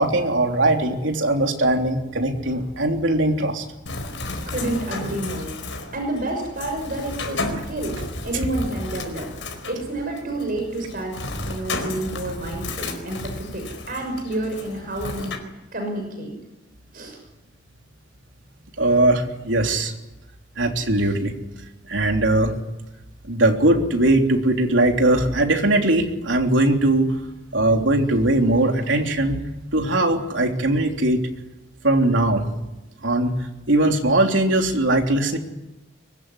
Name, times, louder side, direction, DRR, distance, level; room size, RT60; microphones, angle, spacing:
voice 1, 0.0-3.6 18.8-19.9 20.6-21.3 21.9-22.5 23.2-27.1 27.5-29.4 29.7-31.2 31.8-32.5 33.0-33.3 33.7-35.4, right 1 dB, 85° right, 3 dB, 3.4 m, -20 dB
Bird, 3.9-15.4, left 2 dB, 80° left, 4.7 m, -33 dB
voice 2, 4.4-5.5 5.9-9.3 9.7-15.4 15.7-16.3 16.9-17.2, right 1 dB, 50° right, 2 dB, 6.3 m, -29 dB
23.5 x 21.0 x 10.0 m, 0.98 s
head